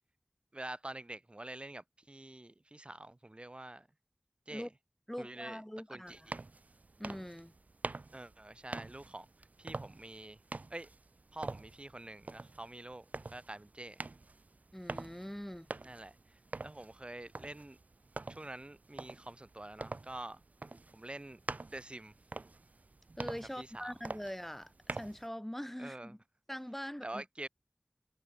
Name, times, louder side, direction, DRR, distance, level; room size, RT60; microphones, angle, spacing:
voice 1, 0.5-3.9 4.5-4.7 5.2-5.6 5.9-6.4 8.1-9.3 9.6-10.4 10.7-10.9 11.3-14.0 15.8-17.8 18.3-20.4 20.9-21.4 21.7-22.1 23.6-23.9 25.8-26.1 27.0-27.5, right 1 dB, 45° right, 5.7 m, -46 dB
voice 2, 5.1-6.3 7.0-7.5 14.7-15.7 23.2-26.2 26.5-27.2, equal, 10° left, 4.8 m, -43 dB
sound 1, 6.1-25.3, right 3 dB, 85° right, 0.9 m, -46 dB
wide cardioid pair, 40°, 3 cm